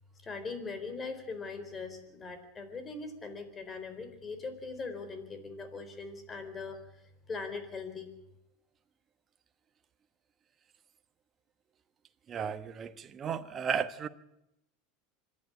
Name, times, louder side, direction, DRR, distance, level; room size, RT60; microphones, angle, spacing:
voice 1, 0.2-7.0 7.3-8.1, left 4 dB, 25° left, 9 dB, 4.1 m, -41 dB
voice 2, 12.3-14.1, right 7 dB, 30° right, 11 dB, 1.1 m, -34 dB
25.5 x 11.0 x 9.8 m, 0.85 s
supercardioid pair, 110°, 0 cm